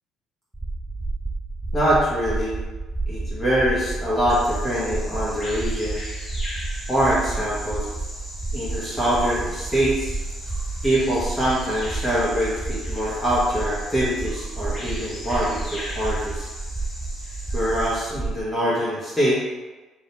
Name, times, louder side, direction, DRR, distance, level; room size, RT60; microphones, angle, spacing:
sound 1, 0.5-18.4, right 2 dB, 5° right, 0.7 m, -31 dB
voice 1, 1.7-2.6 3.1-6.0 6.9-7.8 8.5-10.2 10.8-16.5 17.5-19.4, equal, 15° left, -9 dB, 1.3 m, -24 dB
Bird vocalization bird call bird song, 4.3-18.0, left 1 dB, 30° left, 1.3 m, -39 dB
3.5 x 2.9 x 4.3 m, 1.2 s
cardioid pair, 90°, 0 cm